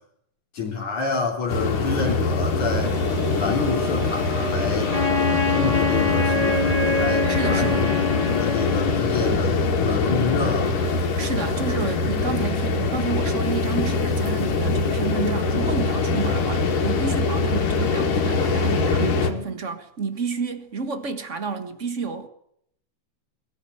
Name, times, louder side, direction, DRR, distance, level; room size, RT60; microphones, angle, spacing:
voice 1, 0.5-3.0 3.4-4.9 5.5-10.8 17.4-17.6, left 5 dB, 65° left, 4.6 m, -28 dB
sound 1, 1.5-19.3, left 3 dB, 80° left, 4.1 m, -23 dB
sound 2, 2.2-13.6 14.0-14.1 15.6-15.7, equal, 65° right, 6.9 m, -37 dB
Wind instrument woodwind instrument, 4.9-9.3, left 4 dB, 15° left, 1.9 m, -24 dB
voice 2, 7.0-7.9 11.2-22.3, right 5 dB, 40° right, 1.0 m, -30 dB
22.0 x 14.5 x 10.0 m
omnidirectional pair, 3.7 m